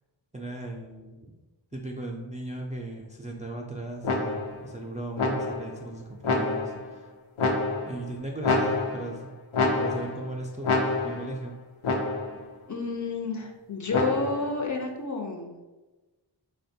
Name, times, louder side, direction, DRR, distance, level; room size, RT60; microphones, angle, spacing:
voice 1, 0.3-1.2 1.7-7.1 7.8-9.3 9.6-11.6, right 2 dB, 20° right, -1 dB, 0.3 m, -37 dB
sound 1, 4.0-4.6 5.2-5.8 6.2-6.9 7.4-8.0 8.4-9.2 9.5-10.3 10.6-11.3 11.8-12.4 13.9-14.5, left 3 dB, 90° left, 0.6 m, -27 dB
voice 2, 12.7-15.6, left 3 dB, 40° left, 3 dB, 0.5 m, -30 dB
4.1 x 2.2 x 2.6 m, 1.2 s
wide cardioid pair, 55°, 47 cm